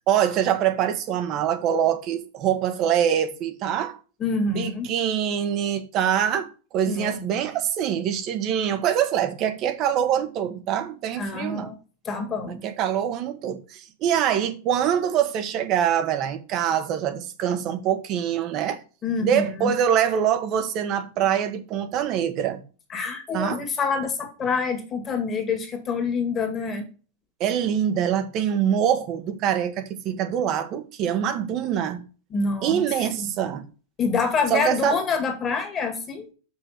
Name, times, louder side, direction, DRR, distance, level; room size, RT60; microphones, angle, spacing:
voice 1, 0.0-4.0 4.5-11.7 12.5-18.8 19.2-22.6 23.3-23.6 27.4-32.0 32.6-33.6 34.5-35.0, right 9 dB, 40° right, 1.3 m, -24 dB
voice 2, 4.2-4.9 6.9-7.1 11.2-11.8 12.0-12.6 19.0-19.7 22.9-26.8 32.3-32.8 33.2-33.3 34.0-36.3, left 4 dB, 25° left, 2.1 m, -26 dB
6.2 x 5.8 x 5.8 m
supercardioid pair, 135°, 0 cm